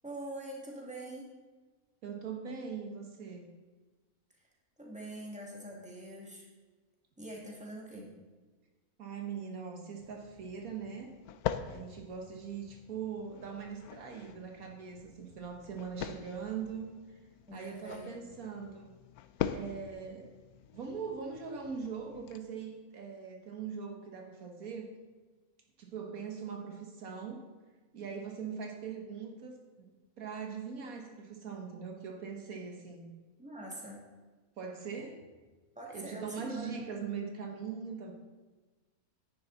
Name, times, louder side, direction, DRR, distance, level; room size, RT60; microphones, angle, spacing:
voice 1, 0.0-1.3 4.8-6.5 7.2-8.1 17.5-18.1 33.4-34.0 35.8-36.8, right 1 dB, 5° right, -2 dB, 2.1 m, -44 dB
voice 2, 2.0-3.5 9.0-11.1 11.7-17.2 17.5-18.9 19.5-20.3 20.7-24.9 25.8-27.4 27.9-29.6 30.2-33.1 34.6-35.3 35.9-38.1, right 6 dB, 70° right, 2 dB, 1.6 m, -41 dB
sound 1, 10.0-22.4, left 9 dB, 85° left, 1.1 m, -43 dB
10.0 x 9.9 x 4.0 m, 1.3 s
omnidirectional pair, 1.6 m